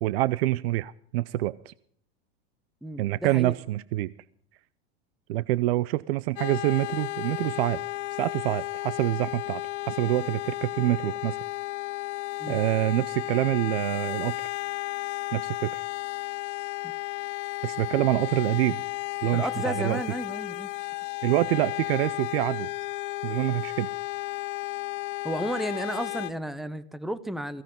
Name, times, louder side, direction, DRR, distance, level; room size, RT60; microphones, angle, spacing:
voice 1, 0.0-1.7 3.0-4.1 5.3-7.8 8.2-9.6 9.9-11.4 12.5-14.4 15.3-15.8 17.6-18.8 19.2-20.0 21.2-22.7 23.2-23.9, right 17 dB, 75° right, 0.6 m, -26 dB
voice 2, 2.8-3.5 12.4-12.6 16.8-16.9 19.3-20.7 25.2-27.6, right 1 dB, ahead, 0.5 m, -33 dB
sound 1, 6.4-26.3, left 21 dB, 40° left, 0.7 m, -33 dB
17.0 x 16.0 x 3.7 m
supercardioid pair, 160°, 31 cm